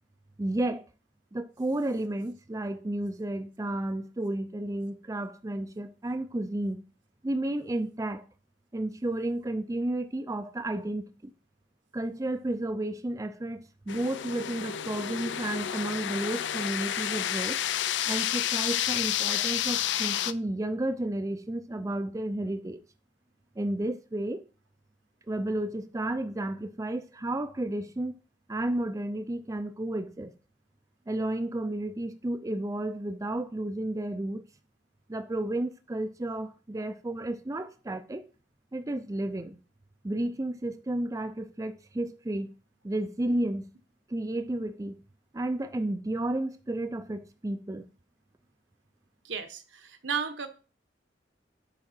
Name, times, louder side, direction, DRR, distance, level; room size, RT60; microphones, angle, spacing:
voice 1, 0.4-0.9 1.3-6.8 7.2-8.2 8.7-11.3 11.9-17.6 18.1-22.8 23.6-24.4 25.3-28.2 28.5-30.3 31.1-34.4 35.1-38.2 38.7-39.6 40.0-42.5 42.8-43.7 44.1-45.0 45.3-47.8, right 1 dB, 20° right, 0.4 m, -32 dB
sound 1, 13.9-20.3, left 11 dB, 70° left, 0.4 m, -30 dB
voice 2, 49.2-50.5, right 6 dB, 75° right, 1.1 m, -34 dB
8.8 x 3.7 x 5.7 m
head